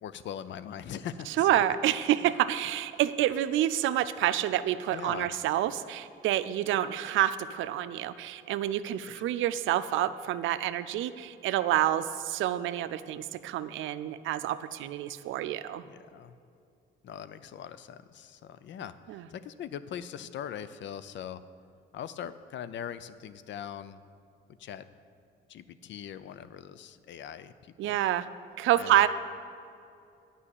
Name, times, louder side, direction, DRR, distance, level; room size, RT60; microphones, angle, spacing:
voice 1, 0.0-1.5 2.2-2.3 4.9-5.3 9.1-9.2 15.8-16.3 17.0-21.4 21.9-24.0 24.6-24.9 25.5-28.0 28.8-29.1, left 9 dB, 65° left, 13 dB, 0.5 m, -41 dB
voice 2, 1.4-15.8 19.1-19.2 27.8-28.3 28.6-29.1, right 12 dB, 85° right, 13 dB, 0.5 m, -28 dB
9.7 x 5.6 x 8.4 m, 2.6 s
cardioid pair, 90°, 20 cm